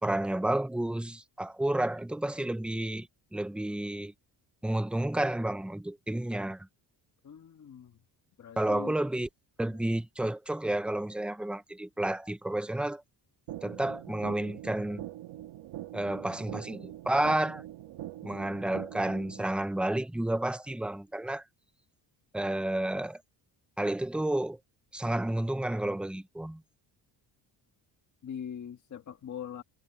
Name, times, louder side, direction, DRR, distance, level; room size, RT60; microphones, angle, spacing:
voice 1, 0.0-4.1 4.6-6.7 8.6-9.3 9.6-13.0 13.6-15.1 15.9-17.6 18.2-21.4 22.3-23.2 23.8-24.6 24.9-26.6, right 1 dB, ahead, 0.6 m, -31 dB
voice 2, 7.2-8.0 8.4-8.9 28.2-29.6, left 8 dB, 40° left, 1.6 m, -42 dB
sound 1, 13.5-19.5, right 14 dB, 85° right, 1.7 m, -43 dB
cardioid pair, 175°, 46 cm